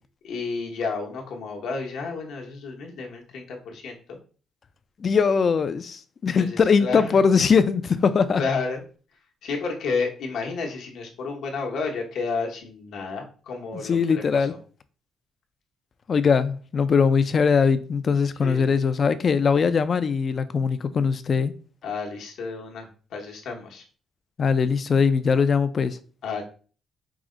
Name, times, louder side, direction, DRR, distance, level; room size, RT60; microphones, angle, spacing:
voice 1, 0.2-4.2 6.4-7.1 8.4-8.8 9.4-14.6 18.4-18.7 21.8-23.8 26.2-26.4, left 4 dB, 80° left, 1.0 m, -31 dB
voice 2, 5.0-8.4 13.7-14.5 16.1-21.5 24.4-26.0, left 5 dB, 45° left, 0.4 m, -21 dB
4.7 x 2.1 x 3.7 m
cardioid pair, 90°, 0 cm